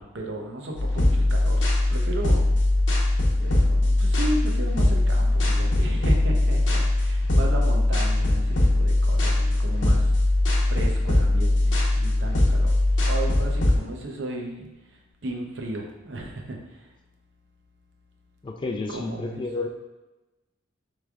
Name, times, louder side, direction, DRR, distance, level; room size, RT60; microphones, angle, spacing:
voice 1, 0.0-1.6 1.9-2.4 3.4-10.1 10.7-14.7 15.2-16.8 18.9-19.4, right 1 dB, 70° right, 1 dB, 0.7 m, -34 dB
sound 1, 0.8-13.8, left 1 dB, 70° left, 0.8 m, -21 dB
voice 2, 18.4-19.7, left 3 dB, 25° left, 3 dB, 0.3 m, -31 dB
3.6 x 3.2 x 3.4 m, 1.1 s
head